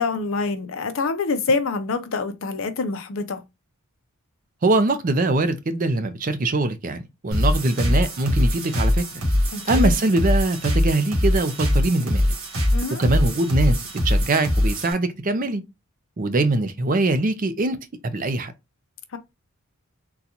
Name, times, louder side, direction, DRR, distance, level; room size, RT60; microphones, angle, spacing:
voice 1, 0.0-3.4 9.5-9.9 12.7-13.0 19.1-19.2, left 4 dB, 60° left, 0.5 m, -26 dB
voice 2, 4.6-9.0 9.7-12.2 13.0-15.6 16.2-17.8 18.0-18.5, right 2 dB, 40° right, 0.5 m, -22 dB
sound 1, 7.3-14.9, left 1 dB, 80° right, 1.4 m, -22 dB
3.9 x 2.3 x 2.8 m
head